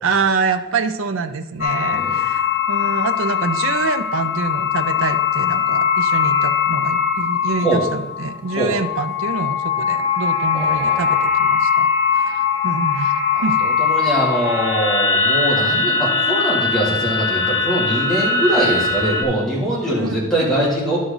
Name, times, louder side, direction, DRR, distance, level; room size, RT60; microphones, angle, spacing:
voice 1, 0.0-11.9 12.2-13.6 20.0-20.3, right 4 dB, 90° right, 9 dB, 0.6 m, -25 dB
sound 1, 1.6-19.2, left 5 dB, 85° left, 1.4 m, -20 dB
voice 2, 1.8-2.1 7.6-7.8 8.6-8.7 10.5-11.1 13.3-21.0, right 1 dB, ahead, -7 dB, 2.6 m, -22 dB
11.0 x 6.3 x 4.0 m, 1.0 s
head